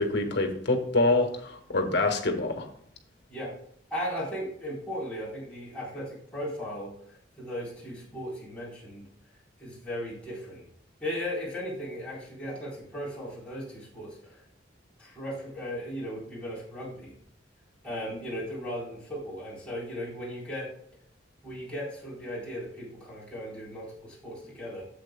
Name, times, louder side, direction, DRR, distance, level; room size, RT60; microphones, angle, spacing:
voice 1, 0.0-2.7, left 2 dB, 65° left, 4 dB, 1.6 m, -26 dB
voice 2, 3.9-9.1 9.6-10.6 11.0-14.5 15.0-17.1 17.8-20.7 21.4-24.8, equal, 5° left, -7 dB, 3.9 m, -37 dB
12.0 x 8.1 x 2.3 m, 0.65 s
head